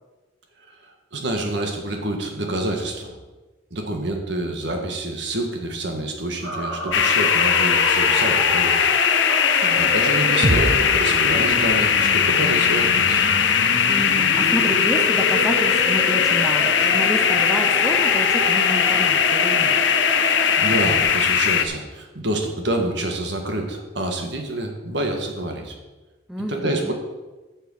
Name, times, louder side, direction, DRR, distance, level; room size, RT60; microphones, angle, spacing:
voice 1, 0.7-3.1 3.7-8.9 9.7-13.3 20.6-25.7 26.5-26.9, right 1 dB, 60° right, 3 dB, 1.6 m, -27 dB
sound 1, 6.4-21.0, right 1 dB, 85° right, 3.0 m, -29 dB
sound 2, 6.9-21.7, left 7 dB, 70° left, 0.7 m, -19 dB
sound 3, 10.4-14.3, right 1 dB, 40° right, 0.9 m, -29 dB
voice 2, 13.9-19.8 26.3-26.9, equal, ahead, 2 dB, 0.7 m, -29 dB
8.3 x 6.6 x 6.5 m, 1.2 s
head